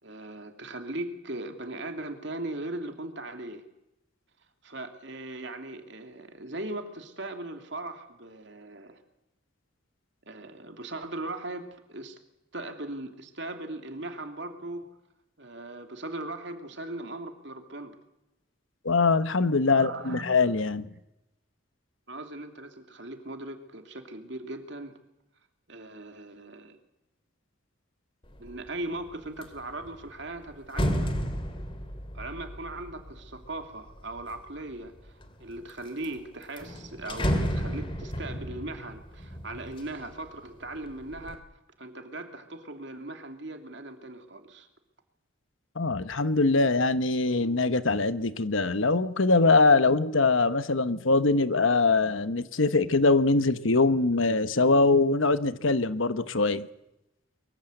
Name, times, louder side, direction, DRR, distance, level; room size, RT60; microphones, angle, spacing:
voice 1, 0.0-3.6 4.6-9.0 10.3-12.2 12.5-14.9 15.4-18.0 19.7-20.2 22.1-25.0 25.7-26.8 28.4-31.3 32.1-41.4 41.8-44.7, right 2 dB, 60° right, 2.9 m, -39 dB
voice 2, 18.8-20.9 45.8-56.7, left 3 dB, 75° left, 1.2 m, -23 dB
sound 1, 28.3-28.7 29.1-34.4 35.0-35.7 36.0-36.1 36.4-40.3 40.7-41.4, equal, 25° left, 2.3 m, -33 dB
23.5 x 23.0 x 8.0 m
head